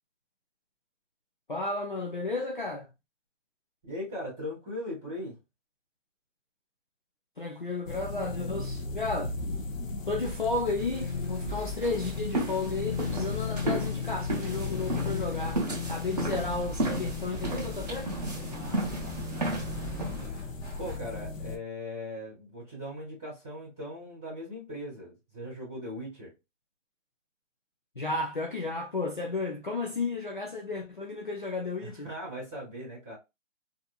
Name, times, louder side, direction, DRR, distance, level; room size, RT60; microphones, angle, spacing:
voice 1, 1.5-2.9 7.4-9.3 10.1-18.1 28.0-32.1, left 3 dB, 40° left, 0.4 m, -33 dB
voice 2, 3.8-5.4 18.4-19.6 20.8-26.3 31.8-33.1, left 1 dB, ahead, 0.7 m, -39 dB
sound 1, 7.9-21.6, left 4 dB, 90° left, 0.7 m, -36 dB
sound 2, 10.2-21.0, left 1 dB, 20° left, 1.0 m, -41 dB
sound 3, 11.8-20.3, right 2 dB, 30° right, 0.7 m, -34 dB
2.7 x 2.5 x 2.2 m
hypercardioid pair, 170°, 38 cm